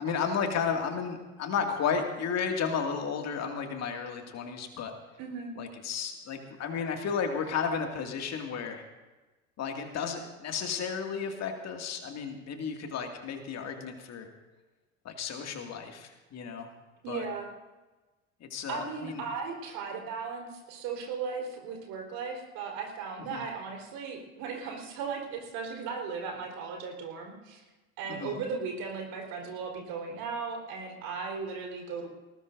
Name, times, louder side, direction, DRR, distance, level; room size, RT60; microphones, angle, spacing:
voice 1, 0.0-4.9 5.6-8.8 9.6-14.3 15.0-16.7 17.1-17.3 18.4-19.2 23.3-23.5 28.1-28.4, left 6 dB, 40° left, 3 dB, 2.3 m, -33 dB
voice 2, 5.2-5.6 17.0-17.5 18.7-27.6 28.0-32.1, right 5 dB, 55° right, 1 dB, 4.2 m, -37 dB
19.5 x 19.0 x 2.6 m, 1.2 s
figure-of-eight pair, 70°, 40 cm